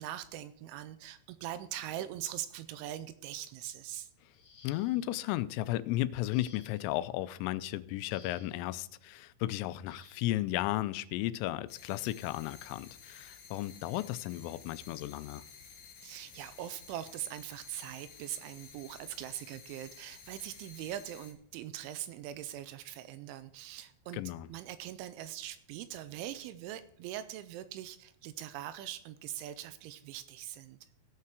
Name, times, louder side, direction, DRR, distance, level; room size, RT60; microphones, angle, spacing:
voice 1, 0.0-4.1 16.0-24.2 24.5-30.8, right 12 dB, 85° right, 2.8 m, -42 dB
sound 1, 4.3-5.2 6.3-7.0 8.1-8.7 9.9-10.3 11.5-11.7 12.2-12.4, left 5 dB, 45° left, 2.4 m, -58 dB
voice 2, 4.6-15.4 24.1-24.5, left 15 dB, 90° left, 3.2 m, -34 dB
sound 2, 11.7-21.3, left 6 dB, 65° left, 1.8 m, -53 dB
17.0 x 5.8 x 4.7 m
omnidirectional pair, 5.7 m